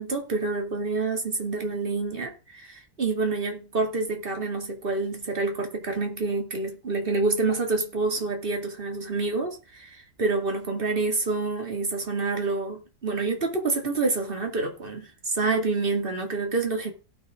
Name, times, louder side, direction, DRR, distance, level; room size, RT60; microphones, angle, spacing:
voice 1, 0.0-16.9, right 3 dB, 30° right, 2.5 m, -27 dB
17.0 x 6.0 x 3.7 m
omnidirectional pair, 1.9 m